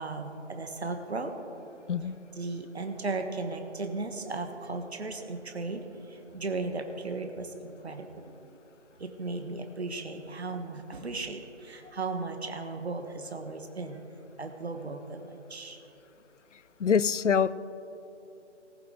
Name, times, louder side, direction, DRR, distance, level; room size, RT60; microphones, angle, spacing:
voice 1, 0.0-1.3 2.0-8.6 9.0-14.0 14.4-15.8, right 3 dB, 60° right, 6 dB, 1.3 m, -36 dB
voice 2, 16.8-17.5, left 7 dB, 80° left, 18 dB, 0.5 m, -24 dB
19.5 x 7.9 x 3.8 m, 3.0 s
figure-of-eight pair, 160°, 36 cm